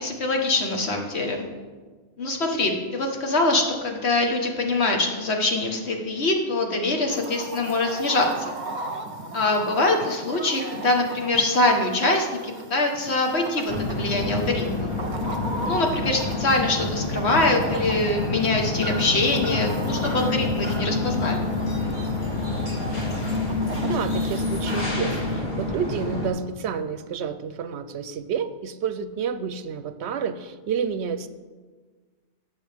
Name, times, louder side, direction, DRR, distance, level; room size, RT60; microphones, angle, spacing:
voice 1, 0.0-1.4 2.2-8.6 9.3-14.9 15.6-21.5, left 2 dB, 65° left, 2 dB, 1.7 m, -24 dB
Chicken rooster, 7.1-24.8, right 2 dB, 45° right, 0.8 m, -38 dB
sound 1, 13.7-26.3, left 3 dB, 40° left, 2.5 m, -27 dB
voice 2, 23.8-31.3, right 7 dB, 75° right, 12 dB, 0.8 m, -29 dB
17.0 x 7.0 x 3.5 m, 1.4 s
omnidirectional pair, 1.2 m